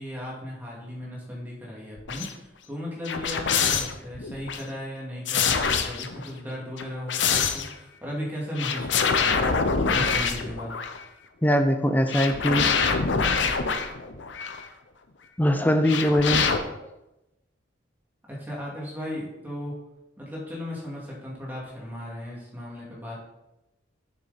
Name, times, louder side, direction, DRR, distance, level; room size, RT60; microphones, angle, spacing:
voice 1, 0.0-9.4 9.9-10.7 18.3-19.8 20.2-23.3, left 1 dB, 10° right, -5 dB, 2.2 m, -36 dB
sound 1, 2.0-2.3 3.1-4.6 5.3-6.3 6.8-7.7 8.6-11.0 12.1-14.7 15.9-16.6, left 5 dB, 75° left, 0.7 m, -25 dB
voice 2, 11.4-12.7 15.4-16.5, equal, 10° left, 7 dB, 0.5 m, -21 dB
7.0 x 6.4 x 4.1 m, 0.93 s
head